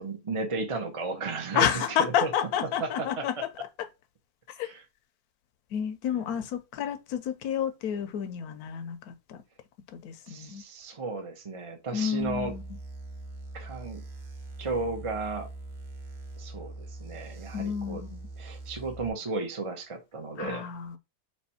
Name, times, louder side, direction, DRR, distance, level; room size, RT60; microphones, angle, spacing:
voice 1, 0.0-2.3 2.8-2.9 3.2-3.3 4.6-4.8 6.1-6.2 10.2-12.5 13.5-14.0 14.6-15.5 16.4-18.0 18.4-20.6, right 3 dB, 45° right, 0.4 m, -34 dB
voice 2, 1.5-3.5 3.8-3.9 4.5-4.7 5.7-9.4 9.9-10.6 11.9-12.6 17.5-18.3 20.4-21.0, left 9 dB, 70° left, 1.0 m, -30 dB
sound 1, 12.2-19.1, right 2 dB, 65° right, 1.3 m, -42 dB
3.3 x 2.9 x 4.1 m
omnidirectional pair, 1.9 m